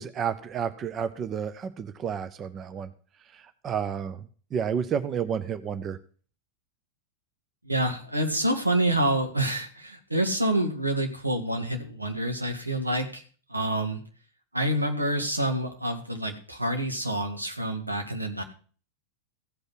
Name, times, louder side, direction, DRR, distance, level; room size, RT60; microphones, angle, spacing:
voice 1, 0.0-2.9 3.3-4.2 4.5-6.0, right 7 dB, 30° right, 12 dB, 0.6 m, -31 dB
voice 2, 7.6-13.2 13.5-14.0 14.5-18.4, right 1 dB, 85° right, 4 dB, 1.7 m, -27 dB
15.0 x 5.4 x 5.9 m, 0.41 s
figure-of-eight pair, 90°, 0 cm